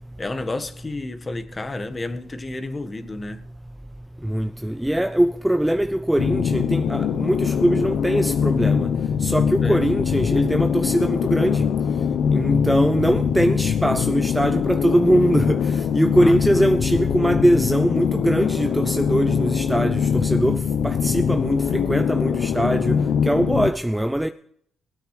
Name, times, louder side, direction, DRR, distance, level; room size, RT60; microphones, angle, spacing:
voice 1, 0.2-3.4 9.6-9.8 16.2-16.8, left 2 dB, 25° left, 1.6 m, -31 dB
voice 2, 4.2-8.9 9.2-11.6 12.3-24.3, right 1 dB, 5° right, 0.6 m, -22 dB
sound 1, 6.2-23.7, left 7 dB, 70° left, 0.8 m, -22 dB
19.5 x 9.4 x 5.0 m
cardioid pair, 100°, 0 cm